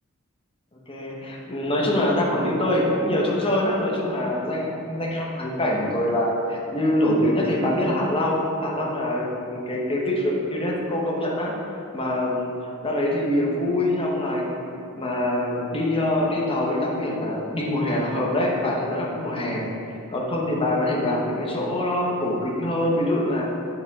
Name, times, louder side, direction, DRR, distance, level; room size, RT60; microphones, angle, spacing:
voice 1, 0.9-11.5 11.9-12.5 12.8-14.6 14.9-23.5, left 1 dB, 25° left, -2 dB, 1.0 m, -24 dB
8.6 x 5.2 x 3.6 m, 2.7 s
head